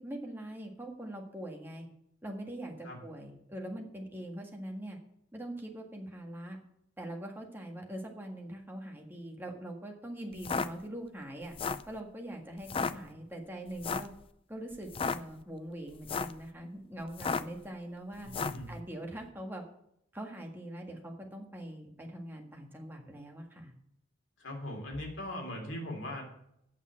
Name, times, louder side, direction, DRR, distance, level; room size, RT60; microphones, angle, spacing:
voice 1, 0.0-1.9 2.2-5.0 5.3-6.6 7.0-11.5 11.9-14.1 14.5-18.3 18.7-19.6 20.1-23.7, right 1 dB, 10° right, 1 dB, 1.7 m, -42 dB
sound 1, 10.3-10.7 11.4-11.9 12.6-12.9 13.8-14.1 14.8-15.2 15.9-16.4 17.1-17.6 18.3-18.6, left 5 dB, 25° left, 0.4 m, -33 dB
voice 2, 18.2-18.7 24.4-26.2, left 1 dB, 70° left, 1 dB, 3.4 m, -39 dB
8.6 x 7.1 x 8.5 m, 0.75 s
head